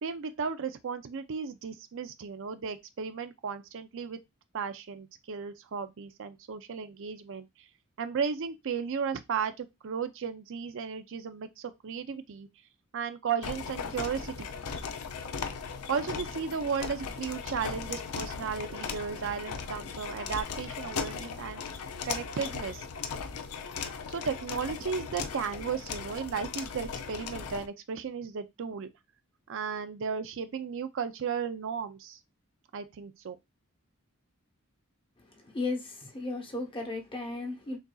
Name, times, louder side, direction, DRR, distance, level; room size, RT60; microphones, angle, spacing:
voice 1, 0.0-4.2 4.5-7.5 8.0-12.5 12.9-14.5 15.9-21.6 22.0-22.9 24.1-28.9 29.5-32.2 32.7-33.4, right 6 dB, 60° right, 0.5 m, -35 dB
sound 1, 13.4-27.7, left 5 dB, 85° left, 0.5 m, -38 dB
voice 2, 35.3-37.8, left 3 dB, 25° left, 0.9 m, -35 dB
6.3 x 2.6 x 2.3 m
head